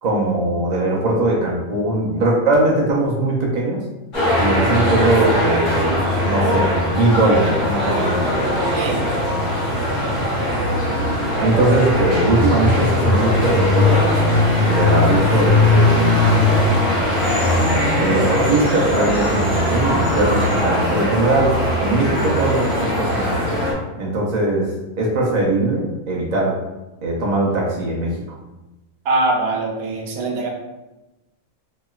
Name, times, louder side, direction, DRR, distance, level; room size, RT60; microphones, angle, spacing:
voice 1, 0.0-3.8 4.4-6.0 6.3-8.2 11.4-14.0 14.7-16.1 17.9-21.5 21.8-23.4 24.0-24.7 25.0-26.6 27.0-28.2, right 2 dB, 60° right, -4 dB, 0.4 m, -20 dB
sound 1, 4.1-23.7, left 1 dB, 60° left, 1.3 m, -19 dB
voice 2, 8.7-9.0 29.0-30.5, right 2 dB, 85° right, 1 dB, 1.1 m, -22 dB
3.0 x 2.9 x 2.3 m, 1.0 s
omnidirectional pair, 1.5 m